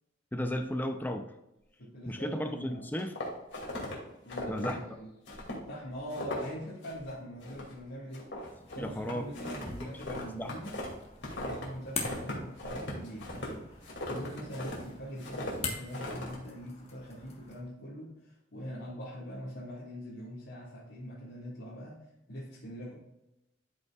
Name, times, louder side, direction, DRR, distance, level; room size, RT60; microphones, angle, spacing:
voice 1, 0.3-1.3 2.0-3.2 4.5-5.0 8.8-10.5, equal, 10° left, 6 dB, 0.5 m, -35 dB
voice 2, 1.8-2.9 4.2-5.1 5.7-8.5 8.7-10.8 11.3-22.9, equal, 85° left, -7 dB, 1.9 m, -43 dB
sound 1, 3.0-3.9 4.3-4.7 5.3-5.6 5.9-6.5 6.8-7.1 7.4-7.8 8.1-11.7 12.0-14.8 15.2-15.5 15.9-16.4, left 1 dB, 65° left, 2.5 m, -39 dB
sound 2, 8.4-17.6, left 4 dB, 35° left, 1.3 m, -44 dB
12.5 x 5.3 x 2.4 m, 0.91 s
head